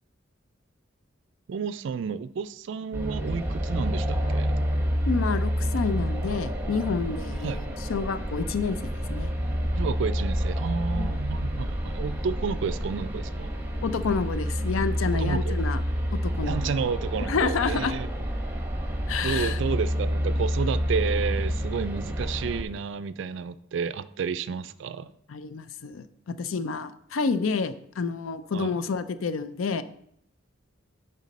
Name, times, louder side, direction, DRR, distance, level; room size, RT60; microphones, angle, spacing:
voice 1, 1.5-4.5 7.4-7.6 9.7-13.5 15.1-15.6 16.4-18.1 19.2-25.1 28.5-28.8, right 6 dB, 60° right, 14 dB, 0.3 m, -31 dB
sound 1, 2.9-22.6, equal, 10° right, 1.1 m, -28 dB
voice 2, 5.1-9.3 11.0-11.1 13.8-15.8 16.1-16.6 17.3-17.9 19.1-19.6 25.3-29.8, left 5 dB, 85° left, 12 dB, 0.5 m, -29 dB
9.1 x 5.5 x 4.1 m, 0.71 s
head